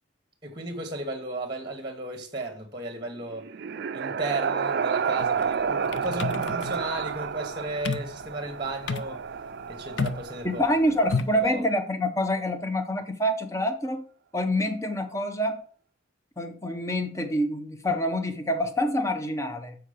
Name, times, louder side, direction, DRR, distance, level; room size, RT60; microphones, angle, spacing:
voice 1, 0.4-3.5 3.9-9.2 9.7-10.7 11.3-11.6, right 2 dB, 25° right, 1.1 m, -34 dB
sound 1, 3.1-11.0, right 6 dB, 55° right, 0.4 m, -30 dB
sound 2, 5.2-11.5, left 4 dB, 65° left, 0.5 m, -33 dB
voice 2, 10.4-14.0 14.3-15.6 16.4-19.8, equal, 15° left, 0.7 m, -26 dB
7.2 x 4.6 x 5.0 m
head